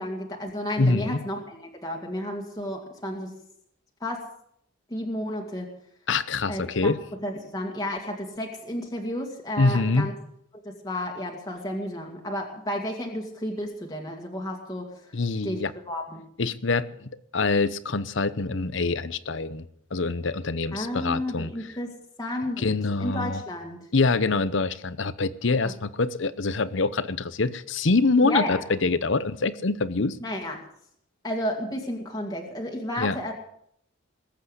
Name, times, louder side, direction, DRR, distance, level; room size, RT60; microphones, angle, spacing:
voice 1, 0.0-3.3 4.0-4.3 4.9-5.7 6.5-6.9 7.2-10.1 10.6-14.9 15.4-16.2 20.7-23.8 28.2-28.6 30.2-30.6 31.2-33.3, left 1 dB, 20° left, 0 dB, 2.2 m, -32 dB
voice 2, 0.8-1.2 6.1-7.0 9.6-10.1 15.1-15.7 16.4-21.5 22.6-23.4 23.9-30.2 33.0-33.2, left 3 dB, 65° left, 15 dB, 0.8 m, -25 dB
20.5 x 8.3 x 8.1 m, 0.70 s
head